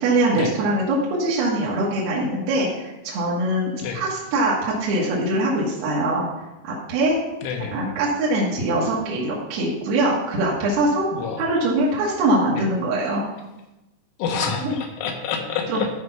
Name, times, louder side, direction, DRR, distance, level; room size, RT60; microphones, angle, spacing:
voice 1, 0.0-6.2 6.6-7.2 7.7-11.1 11.4-13.2 14.6-14.8 15.7-15.8, right 1 dB, 65° right, -5 dB, 3.1 m, -22 dB
voice 2, 7.4-7.8 11.1-11.4 12.5-12.7 14.2-15.9, left 6 dB, 90° left, 3 dB, 3.8 m, -28 dB
13.0 x 4.8 x 5.7 m, 0.98 s
omnidirectional pair, 5.4 m